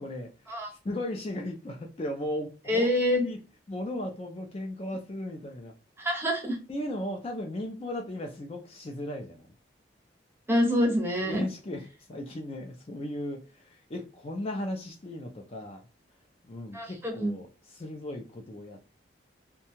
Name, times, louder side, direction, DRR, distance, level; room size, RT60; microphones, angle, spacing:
voice 1, 0.0-0.5 0.8-2.8 3.2-3.4 3.7-5.7 6.7-9.5 11.2-15.8 16.4-18.9, left 1 dB, 30° left, 2 dB, 0.4 m, -36 dB
voice 2, 2.7-3.2 6.0-6.6 10.5-11.4 16.7-17.3, equal, 10° right, 2 dB, 0.6 m, -26 dB
2.7 x 2.2 x 2.8 m, 0.32 s
head